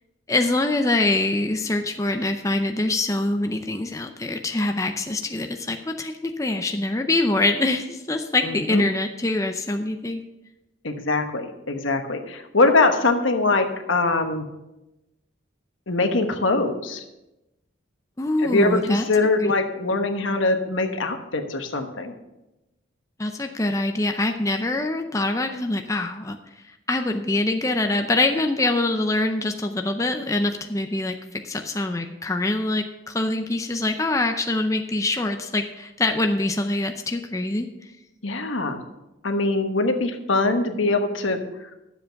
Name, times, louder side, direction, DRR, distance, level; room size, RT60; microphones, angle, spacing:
voice 1, 0.3-10.2 18.2-19.1 19.4-19.5 23.2-26.4 26.9-37.7, left 2 dB, 15° left, 5 dB, 0.5 m, -24 dB
voice 2, 8.4-8.8 10.8-14.5 15.9-17.0 18.4-22.1 38.2-38.8 39.2-41.8, left 3 dB, 80° left, 5 dB, 1.3 m, -23 dB
12.0 x 7.7 x 5.8 m, 0.97 s
head